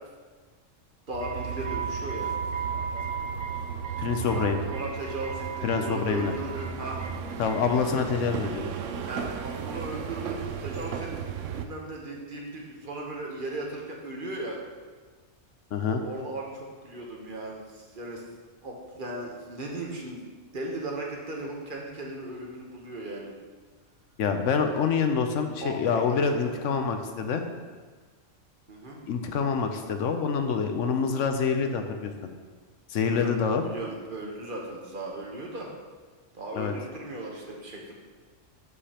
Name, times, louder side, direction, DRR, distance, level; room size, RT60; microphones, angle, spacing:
voice 1, 1.1-2.3 4.3-7.0 9.0-14.6 16.0-18.3 18.6-20.2 20.5-23.3 25.6-26.5 28.7-29.0 33.1-33.3 33.6-35.7 36.3-37.9, right 2 dB, 45° right, -1 dB, 1.1 m, -37 dB
sound 1, 1.1-11.7, right 7 dB, 80° right, 0.9 m, -34 dB
voice 2, 4.0-4.6 5.6-6.3 7.4-8.6 15.7-16.0 24.2-27.4 29.1-32.1 32.9-33.6 36.5-36.7, left 6 dB, 80° left, 6 dB, 1.0 m, -26 dB
11.0 x 5.0 x 2.9 m, 1.4 s
omnidirectional pair, 1.3 m